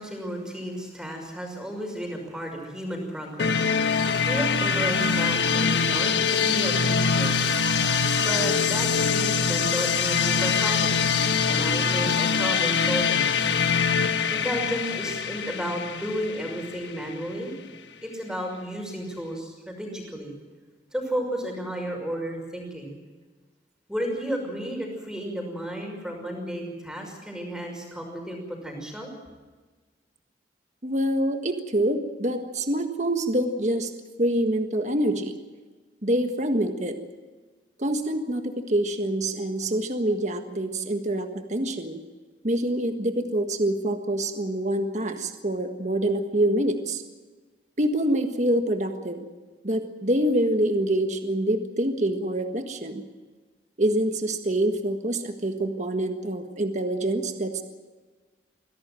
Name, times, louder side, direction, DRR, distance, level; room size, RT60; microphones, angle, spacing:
voice 1, 0.0-7.8 8.2-11.0 11.5-13.3 14.1-17.5 18.0-20.3 20.9-22.9 23.9-29.1, equal, 5° right, 2 dB, 5.9 m, -33 dB
sound 1, 3.4-17.1, left 6 dB, 90° left, 1.3 m, -24 dB
voice 2, 30.8-33.9 34.2-35.4 36.0-37.0 37.8-42.0 42.4-47.0 47.8-49.2 49.6-53.0 53.8-57.6, right 1 dB, 40° right, 6 dB, 1.6 m, -26 dB
24.5 x 17.0 x 7.7 m, 1.3 s
head